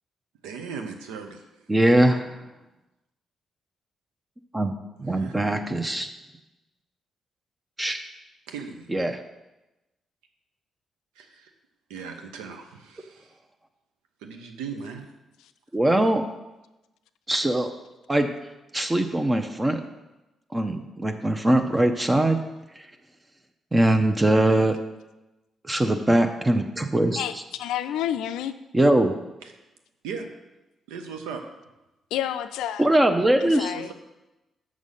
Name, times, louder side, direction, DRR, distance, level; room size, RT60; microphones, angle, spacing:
voice 1, 0.4-1.4 5.1-5.6 8.5-8.9 11.2-11.5 11.9-13.3 14.2-15.1 29.4-29.5 30.0-30.3 30.9-31.4 33.7-33.9, right 5 dB, 80° right, 5 dB, 0.8 m, -38 dB
voice 2, 1.7-2.3 4.5-4.7 5.0-6.1 7.8-8.0 8.9-9.1 15.7-16.2 17.3-17.7 18.1-18.3 18.7-19.8 20.5-22.4 23.7-24.8 25.6-27.3 28.7-29.1 32.8-33.7, right 1 dB, 20° right, 6 dB, 0.8 m, -21 dB
voice 3, 27.2-28.5 32.1-32.8 33.4-33.9, left 11 dB, 75° left, 12 dB, 0.4 m, -29 dB
6.3 x 6.3 x 5.5 m, 1.0 s
hypercardioid pair, 40°, 0 cm